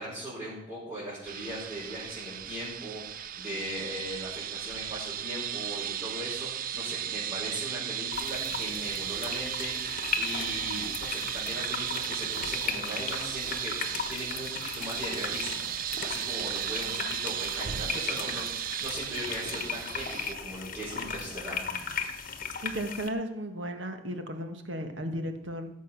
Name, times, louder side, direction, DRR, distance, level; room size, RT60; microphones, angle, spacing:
voice 1, 0.0-21.6, right 1 dB, 20° right, -11 dB, 5.7 m, -39 dB
sound 1, 1.2-20.3, right 10 dB, 50° right, 0.4 m, -35 dB
sound 2, 8.1-23.1, left 5 dB, 50° left, 1.2 m, -37 dB
voice 2, 22.6-25.7, equal, 75° right, 6 dB, 1.6 m, -35 dB
17.0 x 7.2 x 6.0 m, 0.81 s
head